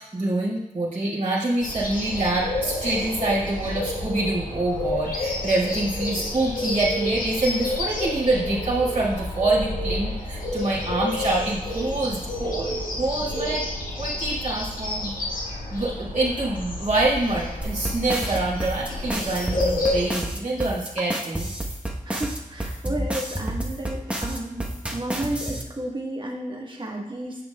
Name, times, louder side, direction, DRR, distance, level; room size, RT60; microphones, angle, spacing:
voice 1, 0.0-13.6 14.0-15.2 15.7-21.5, right 2 dB, 55° right, -7 dB, 2.5 m, -26 dB
sound 1, 1.6-20.0, left 1 dB, 75° left, 1.6 m, -30 dB
sound 2, 17.6-25.6, right 1 dB, 10° right, 1.1 m, -29 dB
voice 2, 22.0-27.5, right 1 dB, 35° right, -1 dB, 1.4 m, -32 dB
9.7 x 6.2 x 2.3 m, 0.96 s
cardioid pair, 45°, 14 cm